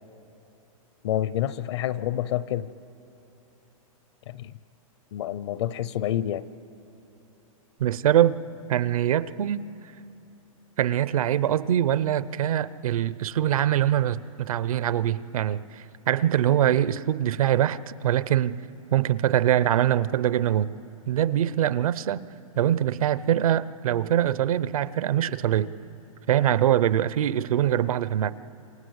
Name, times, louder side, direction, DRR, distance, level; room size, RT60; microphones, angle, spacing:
voice 1, 1.0-2.7 4.3-4.5 5.1-6.5, left 12 dB, 50° left, 0.6 m, -28 dB
voice 2, 7.8-8.4 8.7-9.7 10.8-18.6 18.9-20.7 21.1-22.3 22.6-25.7 26.3-28.3, right 11 dB, 75° right, 0.8 m, -23 dB
27.5 x 24.5 x 8.1 m
hypercardioid pair, 165°, 18 cm